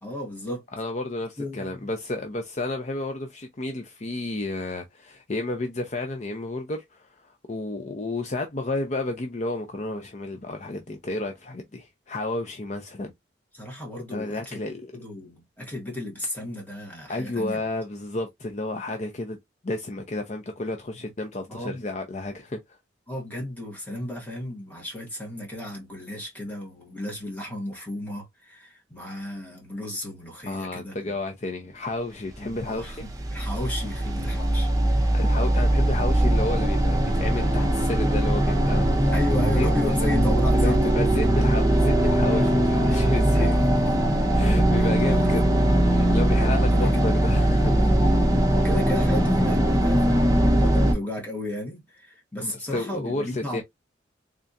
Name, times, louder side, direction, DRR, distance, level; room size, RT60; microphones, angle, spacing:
voice 1, 0.0-0.6 1.4-1.9 13.5-14.6 14.9-17.6 21.5-21.8 23.1-31.1 32.4-34.7 35.0-35.1 39.1-40.9 42.3-42.5 42.9-43.0 43.3-43.8 45.0-45.3 46.7-47.2 48.5-53.6, left 1 dB, 10° left, 1.6 m, -33 dB
voice 2, 0.8-13.1 14.1-14.9 17.1-19.4 19.6-22.8 30.4-33.0 35.1-39.1 39.5-39.7 40.0-40.1 40.5-43.5 44.3-47.9 52.4-53.6, left 2 dB, 40° left, 0.6 m, -31 dB
sound 1, 32.5-50.9, right 1 dB, 20° right, 0.8 m, -21 dB
3.7 x 3.3 x 2.6 m
head